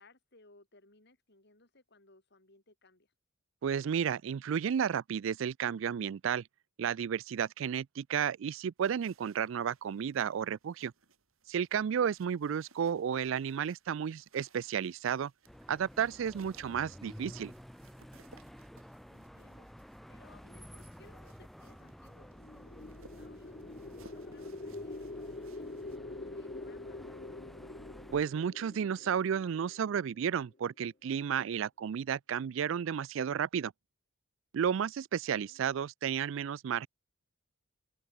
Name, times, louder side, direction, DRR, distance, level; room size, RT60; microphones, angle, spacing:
voice 1, 0.0-3.1 11.9-12.1 19.1-25.6 26.1-27.5 35.4-35.7, left 2 dB, 55° left, 5.9 m, -63 dB
voice 2, 3.6-6.4 6.8-10.9 11.5-15.3 15.7-17.5 28.1-33.7 34.5-36.9, right 8 dB, 65° right, 0.4 m, -32 dB
sound 1, 8.8-26.0, right 4 dB, 85° right, 2.7 m, -64 dB
sound 2, 15.5-28.2, equal, ahead, 0.4 m, -52 dB
sound 3, 22.2-30.4, left 2 dB, 40° left, 1.0 m, -45 dB
open air
head